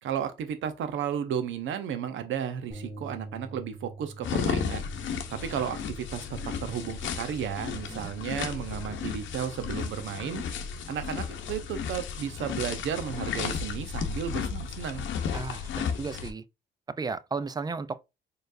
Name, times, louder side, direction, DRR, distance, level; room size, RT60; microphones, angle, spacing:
voice 1, 0.0-4.9 5.3-10.4 10.9-15.1, right 8 dB, 75° right, 0.7 m, -33 dB
sound 1, 2.7-8.9, right 2 dB, 5° left, 1.6 m, -47 dB
sound 2, 4.2-16.3, left 6 dB, 75° left, 0.8 m, -34 dB
voice 2, 15.3-16.4 17.0-18.0, right 4 dB, 20° right, 0.4 m, -34 dB
4.4 x 3.2 x 2.5 m
cardioid pair, 90°, 20 cm